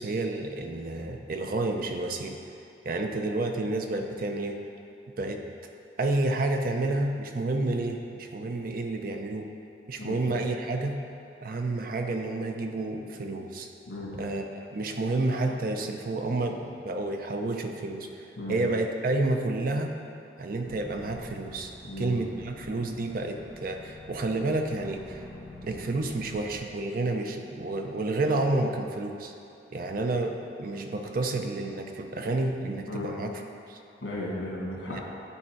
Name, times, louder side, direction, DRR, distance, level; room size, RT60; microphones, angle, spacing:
voice 1, 0.0-2.4 2.8-4.6 5.2-5.4 6.0-9.5 9.9-11.0 11.4-13.7 14.2-19.9 20.4-21.7 22.0-25.3 25.6-29.3 29.7-33.4 33.7-33.8 34.9-35.0, right 2 dB, 50° right, 4 dB, 0.5 m, -30 dB
voice 2, 13.9-14.2 18.4-18.6 21.8-22.2 32.9-33.1 34.0-35.0, left 1 dB, 80° left, -4 dB, 1.6 m, -35 dB
sound 1, 20.6-26.6, left 1 dB, 5° right, 1.0 m, -47 dB
9.9 x 3.6 x 4.5 m, 2.7 s
head